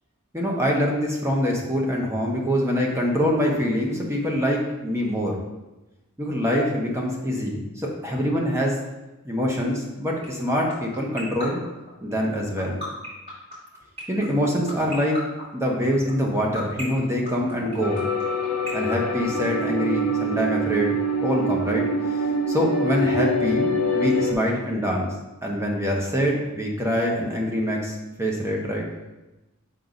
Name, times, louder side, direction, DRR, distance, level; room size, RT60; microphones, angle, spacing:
voice 1, 0.3-5.4 6.2-8.8 9.2-11.6 12.0-12.8 14.1-15.2 15.5-18.1 18.7-20.9 21.2-25.1 25.4-28.9, equal, 10° right, -1 dB, 1.0 m, -24 dB
sound 1, 10.2-19.9, left 1 dB, 25° right, 2.5 m, -35 dB
sound 2, 17.8-24.3, equal, 90° left, 0.9 m, -25 dB
6.6 x 5.4 x 3.9 m, 1.0 s
head